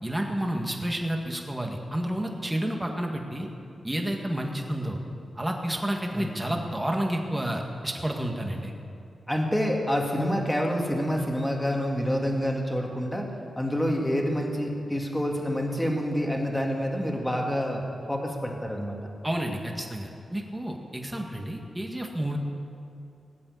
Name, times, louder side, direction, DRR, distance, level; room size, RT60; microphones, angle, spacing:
voice 1, 0.0-3.5 3.8-5.0 5.4-8.7 19.2-22.4, right 1 dB, 10° right, 1 dB, 1.8 m, -30 dB
voice 2, 6.1-6.4 9.3-13.3 13.6-19.0, equal, 10° left, 0 dB, 2.2 m, -27 dB
18.5 x 7.7 x 9.7 m, 2.6 s
wide cardioid pair, 120°, 0 cm